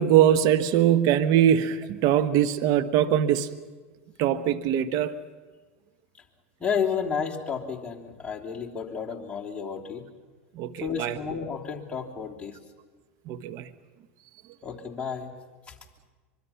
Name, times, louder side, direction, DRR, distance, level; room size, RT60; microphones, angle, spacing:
voice 1, 0.0-3.5 4.2-5.2 10.5-11.2 13.3-13.7, right 10 dB, 55° right, 1.1 m, -22 dB
voice 2, 6.6-10.0 10.8-12.6 14.6-15.3 15.7-15.8, left 6 dB, 15° left, 3.1 m, -31 dB
24.5 x 23.5 x 5.8 m
hypercardioid pair, 105°, 8 cm